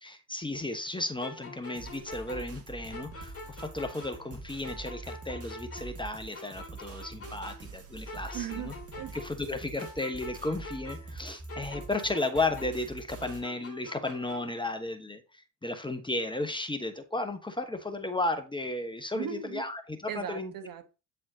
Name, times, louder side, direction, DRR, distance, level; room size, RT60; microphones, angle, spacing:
voice 1, 0.0-8.7 9.1-20.5, left 2 dB, 10° left, 1.0 m, -34 dB
sound 1, 1.2-4.4 4.6-7.8 8.1-11.2 11.5-14.6, left 2 dB, 30° left, 2.6 m, -46 dB
sound 2, 1.7-13.4, right 3 dB, 30° right, 1.7 m, -45 dB
voice 2, 8.3-9.2 19.1-19.6 20.1-20.9, right 10 dB, 45° right, 1.1 m, -38 dB
8.8 x 4.3 x 2.7 m
figure-of-eight pair, 50°, 47 cm